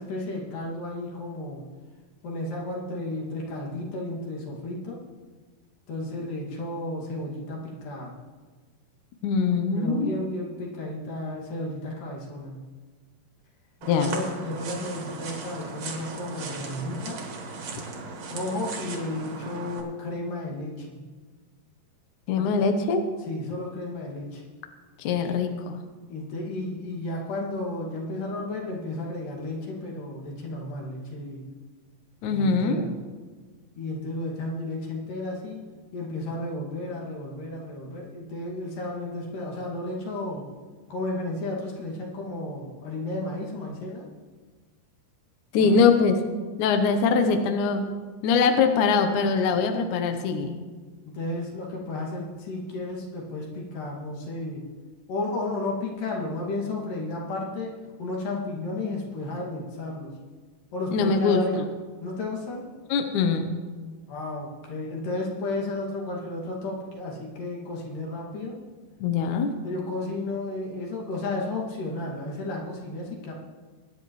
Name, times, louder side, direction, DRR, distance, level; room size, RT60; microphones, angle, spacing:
voice 1, 0.0-1.7 2.2-5.0 5.9-8.1 9.7-12.6 13.9-17.2 18.3-21.0 22.4-22.7 23.3-24.4 26.1-31.5 32.3-32.9 33.8-35.6 35.9-40.5 40.9-44.1 45.6-45.8 51.1-54.6 55.1-60.1 60.7-61.6 62.0-62.7 64.1-68.6 69.6-73.3, left 2 dB, 60° left, -3 dB, 3.5 m, -33 dB
voice 2, 9.2-10.1 13.9-14.2 22.3-23.0 25.0-25.8 32.2-32.8 45.5-46.2 46.6-47.9 48.2-50.5 60.9-61.6 62.9-63.5 69.0-69.5, left 5 dB, 75° left, 6 dB, 1.8 m, -22 dB
sound 1, 13.8-19.8, right 4 dB, 55° right, 2.2 m, -37 dB
22.5 x 9.7 x 3.1 m, 1.4 s
omnidirectional pair, 4.5 m